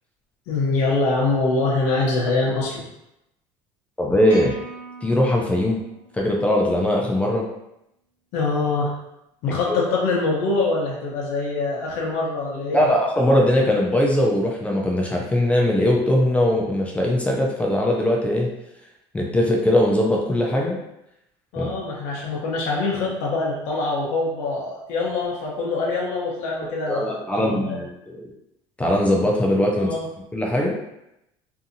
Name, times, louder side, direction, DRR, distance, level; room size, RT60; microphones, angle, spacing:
voice 1, 0.5-2.8 8.3-8.9 9.4-12.9 21.5-27.8 29.7-30.1, left 3 dB, 70° left, -3 dB, 0.7 m, -24 dB
voice 2, 4.0-4.6 5.0-5.8 6.1-7.4 9.5-9.8 12.7-18.5 19.1-20.8 21.6-21.7 26.6-27.9 28.8-29.9 30.3-30.7, left 1 dB, 10° left, -1 dB, 0.4 m, -20 dB
sound 1, 4.3-6.7, right 4 dB, 15° right, 1.3 m, -41 dB
2.7 x 2.6 x 2.6 m, 0.84 s
cardioid pair, 135°, 12 cm